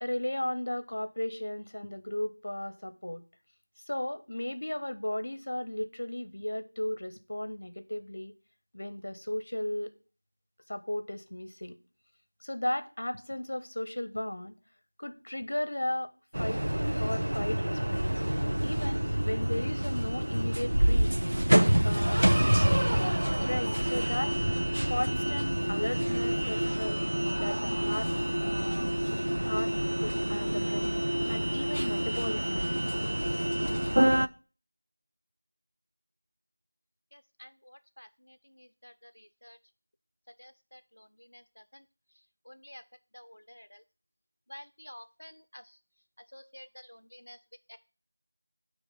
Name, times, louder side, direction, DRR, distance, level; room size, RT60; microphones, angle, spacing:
voice 1, 0.0-3.2 3.9-8.3 8.7-9.9 10.7-11.8 12.4-14.5 15.0-16.1 16.4-16.6 17.0-18.1 18.6-21.2 21.8-22.2 23.4-24.3 24.9-27.0 27.4-28.1 28.4-29.0 29.4-29.7 30.0-32.7, left 1 dB, 45° left, 11 dB, 0.6 m, -35 dB
sound 1, 16.3-34.3, right 1 dB, 65° right, 0.4 m, -27 dB
voice 2, 37.1-39.6 40.3-41.9 42.1-42.8 43.1-43.8 44.5-45.8 46.2-47.4 47.7-47.8, equal, 75° left, 10 dB, 0.3 m, -52 dB
7.5 x 3.0 x 5.6 m, 0.36 s
figure-of-eight pair, 175°, 0 cm